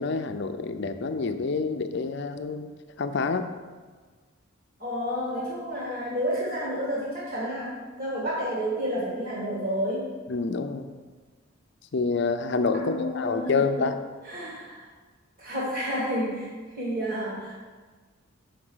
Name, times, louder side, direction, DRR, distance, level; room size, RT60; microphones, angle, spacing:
voice 1, 0.0-2.7 3.0-3.5 10.3-10.9 11.9-14.0, left 4 dB, 55° left, 8 dB, 0.5 m, -27 dB
voice 2, 4.8-7.7 8.0-10.1 12.7-13.6 14.2-14.8 15.4-16.5 16.7-17.6, equal, 45° right, -5 dB, 1.9 m, -30 dB
6.4 x 5.0 x 6.2 m, 1.4 s
head